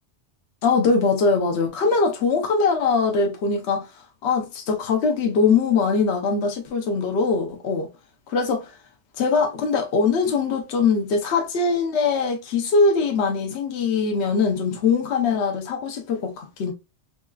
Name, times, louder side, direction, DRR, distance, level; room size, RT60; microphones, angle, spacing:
voice 1, 0.6-7.9 8.3-8.8 9.2-16.7, left 4 dB, 70° left, 1.0 m, -22 dB
4.0 x 2.3 x 2.2 m
omnidirectional pair, 1.2 m